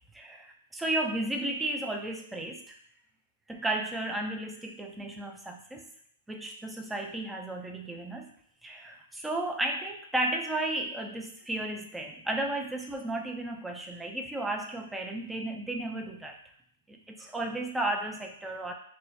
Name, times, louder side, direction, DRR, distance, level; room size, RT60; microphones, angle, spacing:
voice 1, 0.1-0.5 0.7-2.7 3.5-5.8 6.3-8.3 8.6-16.4 16.9-18.7, right 1 dB, 5° right, 2 dB, 0.4 m, -33 dB
4.6 x 2.0 x 2.7 m, 0.67 s
hypercardioid pair, 155°, 0 cm